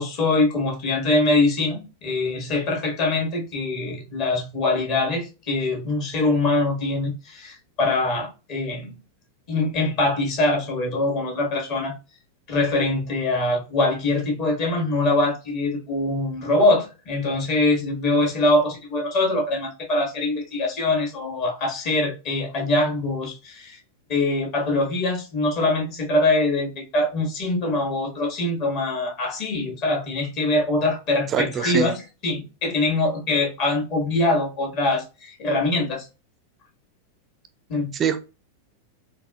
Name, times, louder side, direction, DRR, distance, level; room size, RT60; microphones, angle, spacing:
voice 1, 0.0-9.0 9.5-12.0 12.5-23.8 24.1-36.1 37.7-37.9, left 2 dB, 40° left, 1.5 m, -23 dB
voice 2, 31.3-31.9 37.9-38.2, right 7 dB, 25° right, 0.5 m, -23 dB
4.0 x 2.7 x 2.3 m
figure-of-eight pair, 90°, 0 cm